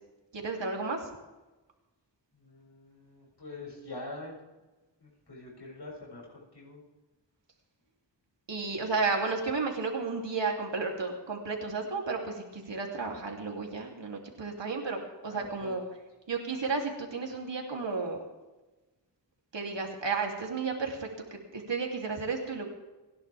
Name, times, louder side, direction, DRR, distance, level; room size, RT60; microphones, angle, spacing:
voice 1, 0.3-1.0 8.5-15.8 16.3-18.2 19.5-21.1 21.5-22.7, right 4 dB, 75° right, 1 dB, 3.2 m, -32 dB
voice 2, 2.3-4.4 5.0-6.8 15.2-15.8, left 2 dB, 65° left, -4 dB, 7.0 m, -45 dB
29.0 x 11.5 x 3.6 m, 1.1 s
wide cardioid pair, 55°, 44 cm